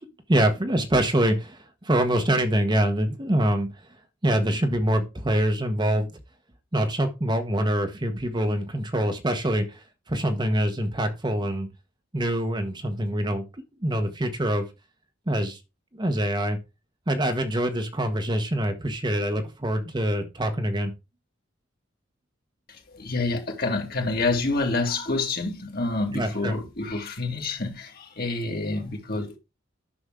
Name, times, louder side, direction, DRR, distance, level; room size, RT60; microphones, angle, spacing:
voice 1, 0.3-3.7 4.2-6.1 6.7-11.7 12.1-13.4 13.8-14.7 15.3-15.6 15.9-16.6 17.1-20.9 26.1-26.5, right 1 dB, 25° right, 1.1 m, -25 dB
voice 2, 22.7-29.4, left 3 dB, 55° left, 2.4 m, -28 dB
10.0 x 6.2 x 3.7 m
head